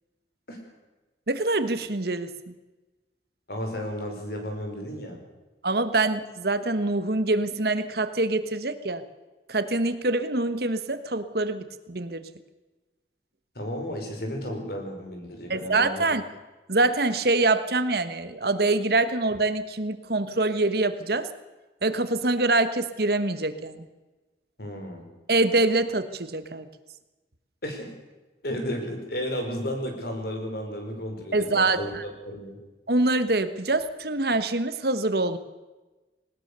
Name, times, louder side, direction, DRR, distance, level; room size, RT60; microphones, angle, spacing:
voice 1, 1.3-2.5 5.6-9.0 9.5-12.3 15.5-16.2 16.7-21.3 21.8-23.8 25.3-26.7 31.3-32.0 32.9-35.4, right 2 dB, 60° right, 11 dB, 1.3 m, -25 dB
voice 2, 3.5-5.2 13.5-16.1 24.6-25.1 27.6-27.9 28.4-32.6, equal, 55° left, 3 dB, 5.0 m, -33 dB
20.0 x 19.5 x 6.8 m, 1.2 s
head